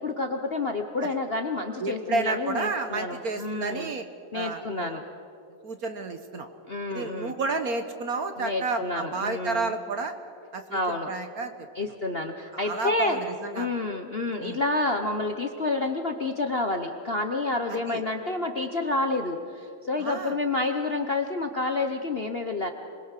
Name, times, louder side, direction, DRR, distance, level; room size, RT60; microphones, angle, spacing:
voice 1, 0.0-3.9 4.3-5.0 6.7-7.3 8.4-9.7 10.7-11.1 11.7-13.2 13.5-22.7, left 2 dB, 40° left, 5 dB, 0.9 m, -29 dB
voice 2, 1.8-4.1 4.3-5.0 5.6-6.5 6.9-10.1 10.5-11.7 12.5-13.7 14.4-14.6 17.7-18.0 20.0-20.4, right 3 dB, 50° right, 8 dB, 1.3 m, -31 dB
26.5 x 21.5 x 6.6 m, 2.5 s
omnidirectional pair, 2.3 m